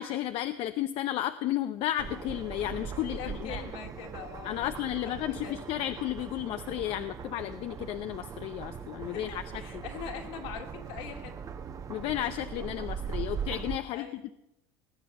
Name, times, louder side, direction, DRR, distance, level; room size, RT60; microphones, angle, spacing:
voice 1, 0.0-3.6 4.4-9.4 9.7-9.8 11.9-14.3, left 13 dB, 55° left, 10 dB, 0.7 m, -33 dB
sound 1, 2.0-13.8, right 6 dB, 30° right, 1.1 m, -40 dB
voice 2, 3.1-4.8 5.3-5.6 9.0-11.3 13.8-14.2, left 7 dB, 75° left, 2 dB, 3.0 m, -42 dB
19.0 x 7.9 x 7.6 m, 0.82 s
supercardioid pair, 110°, 11 cm